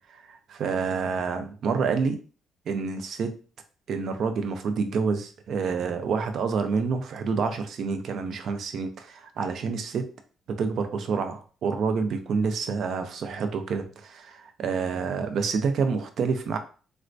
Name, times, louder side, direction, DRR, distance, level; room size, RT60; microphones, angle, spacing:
voice 1, 0.1-2.2 2.7-3.3 3.9-10.1 10.5-16.6, right 5 dB, 55° right, 7 dB, 0.5 m, -28 dB
4.2 x 2.1 x 2.5 m, 0.39 s
cardioid pair, 140°, 0 cm